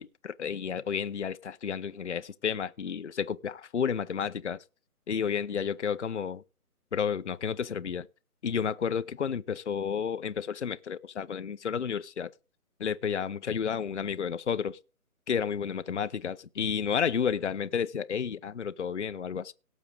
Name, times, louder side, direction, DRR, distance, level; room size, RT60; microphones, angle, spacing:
voice 1, 0.0-4.6 5.1-6.4 6.9-8.1 8.4-12.3 12.8-14.8 15.3-19.5, left 7 dB, 50° left, 0.6 m, -31 dB
17.5 x 7.2 x 3.8 m
hypercardioid pair, 170°, 45 cm